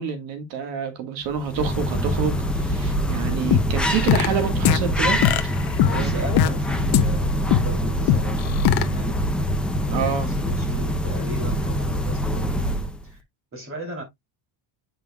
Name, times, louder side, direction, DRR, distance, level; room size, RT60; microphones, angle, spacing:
voice 1, 0.0-5.5 5.8-6.3 9.9-10.3, right 7 dB, 60° right, 1.6 m, -28 dB
sound 1, 1.3-13.1, equal, ahead, 0.5 m, -24 dB
sound 2, 3.5-4.3 4.6-4.8 5.2-6.5 6.9-7.0 7.5-7.6 8.1-8.8, left 11 dB, 55° left, 0.9 m, -18 dB
voice 2, 5.9-9.1 9.9-12.6 13.0-13.2 13.5-14.0, equal, 25° right, 3.0 m, -37 dB
8.7 x 5.5 x 2.2 m
cardioid pair, 170°, 49 cm